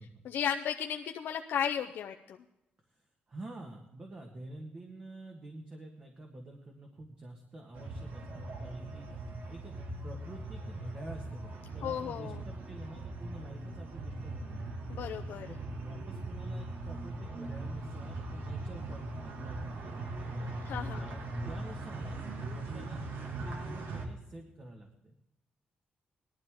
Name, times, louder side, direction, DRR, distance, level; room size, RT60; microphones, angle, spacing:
voice 1, 0.2-2.4 11.8-12.4 14.9-15.5 20.7-21.1, left 8 dB, 70° left, 4 dB, 0.6 m, -34 dB
voice 2, 2.9-14.6 15.5-20.5 21.0-21.2 21.4-25.1, right 2 dB, 30° right, 2 dB, 1.6 m, -48 dB
sound 1, 7.7-24.0, right 2 dB, 70° right, 2.2 m, -40 dB
19.0 x 12.0 x 3.6 m, 0.89 s
wide cardioid pair, 155°, 4 cm